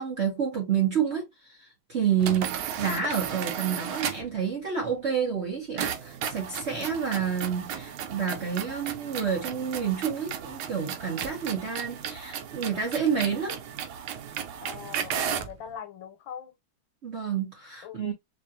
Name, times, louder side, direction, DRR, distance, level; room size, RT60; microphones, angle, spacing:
voice 1, 0.0-13.6 17.0-18.1, right 7 dB, 50° right, 0.9 m, -29 dB
sound 1, 2.2-4.4 5.8-15.6, right 9 dB, 85° right, 1.5 m, -35 dB
voice 2, 14.6-16.5 17.8-18.1, left 8 dB, 75° left, 1.5 m, -41 dB
4.6 x 2.5 x 2.6 m
omnidirectional pair, 2.2 m